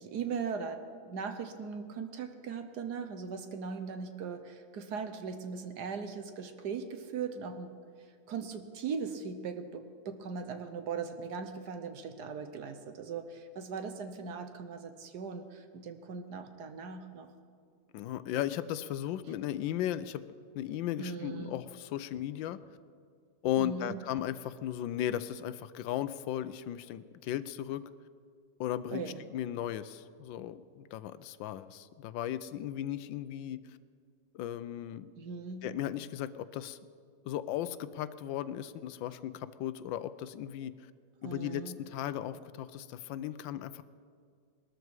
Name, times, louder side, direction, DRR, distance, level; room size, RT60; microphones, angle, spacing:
voice 1, 0.0-7.7 8.3-17.3 21.0-21.6 23.6-24.0 28.9-29.2 35.2-35.7 41.2-41.8, right 5 dB, 65° right, 8 dB, 1.4 m, -39 dB
voice 2, 17.9-20.2 20.5-22.6 23.4-27.8 28.6-33.6 34.3-35.1 35.6-36.8 37.2-40.7 41.2-43.8, left 11 dB, 85° left, 14 dB, 1.3 m, -36 dB
20.5 x 13.0 x 4.7 m, 2.1 s
omnidirectional pair, 2.0 m